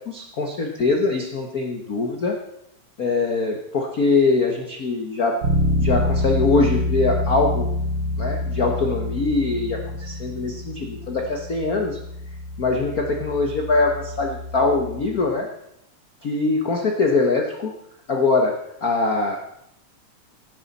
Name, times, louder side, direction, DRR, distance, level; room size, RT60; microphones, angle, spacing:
voice 1, 0.1-2.4 3.0-5.4 5.8-7.7 8.2-12.0 12.6-15.5 16.2-17.7 18.1-19.4, left 3 dB, 70° left, 2 dB, 0.8 m, -22 dB
Bass guitar, 5.4-15.2, left 1 dB, 45° right, 2.1 m, -27 dB
17.0 x 9.8 x 4.2 m, 0.79 s
omnidirectional pair, 3.5 m